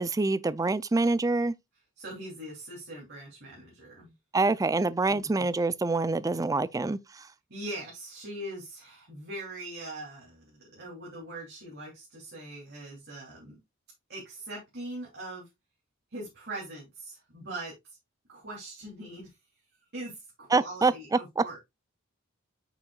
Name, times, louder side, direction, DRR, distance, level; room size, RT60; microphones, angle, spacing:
voice 1, 0.0-1.5 4.3-7.3 20.5-21.4, right 3 dB, 15° right, 0.4 m, -26 dB
voice 2, 2.0-4.1 5.1-5.5 7.5-13.6 14.1-15.5 16.1-17.7 18.3-19.3 19.9-21.6, right 1 dB, 55° right, 3.0 m, -41 dB
8.4 x 6.1 x 2.3 m
head